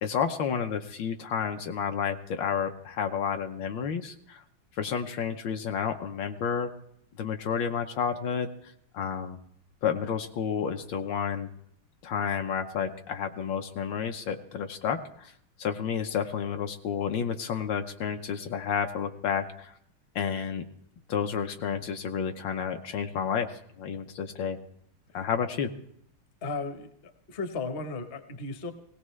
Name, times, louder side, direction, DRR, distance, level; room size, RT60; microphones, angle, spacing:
voice 1, 0.0-4.4 4.8-6.7 7.2-9.4 9.8-11.5 12.0-15.3 15.6-19.7 20.1-20.6 21.1-24.6 25.1-25.7, left 7 dB, 70° left, 6 dB, 1.4 m, -31 dB
voice 2, 26.4-28.7, left 3 dB, 40° left, 8 dB, 0.9 m, -35 dB
19.0 x 17.5 x 3.2 m, 0.69 s
omnidirectional pair, 2.3 m